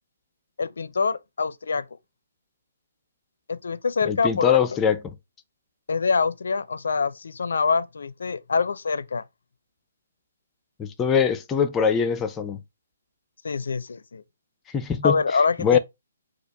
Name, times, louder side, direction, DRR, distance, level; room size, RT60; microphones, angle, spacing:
voice 1, 0.6-1.8 3.5-4.6 5.9-9.2 13.4-14.2 15.0-15.8, left 5 dB, 70° left, 0.5 m, -25 dB
voice 2, 4.0-5.0 10.8-12.6 14.7-15.1 15.6-15.8, left 7 dB, 15° left, 0.6 m, -22 dB
4.4 x 2.4 x 4.7 m
figure-of-eight pair, 135°, 0 cm